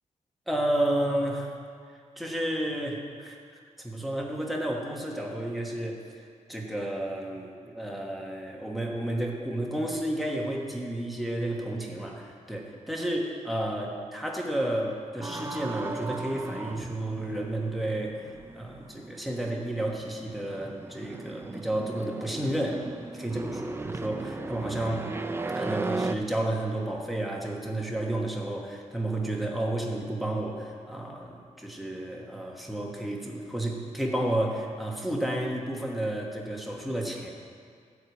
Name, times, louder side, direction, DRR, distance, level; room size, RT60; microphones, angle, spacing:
voice 1, 0.5-1.5 2.2-18.2 18.5-22.8 23.1-23.7 24.0-25.1 25.5-37.3, right 1 dB, ahead, -1 dB, 1.2 m, -31 dB
sound 1, 15.2-26.2, right 3 dB, 20° right, 0.4 m, -37 dB
13.0 x 4.7 x 8.2 m, 2.2 s
wide cardioid pair, 160°, 13 cm